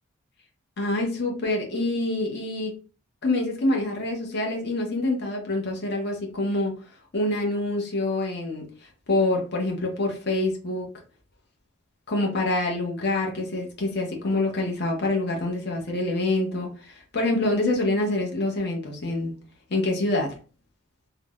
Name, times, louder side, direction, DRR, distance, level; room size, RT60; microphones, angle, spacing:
voice 1, 0.8-2.7 3.2-6.7 7.1-8.6 9.1-10.9 12.1-19.3 19.7-20.3, left 2 dB, 50° left, 0 dB, 0.7 m, -26 dB
3.3 x 2.0 x 2.3 m, 0.38 s
head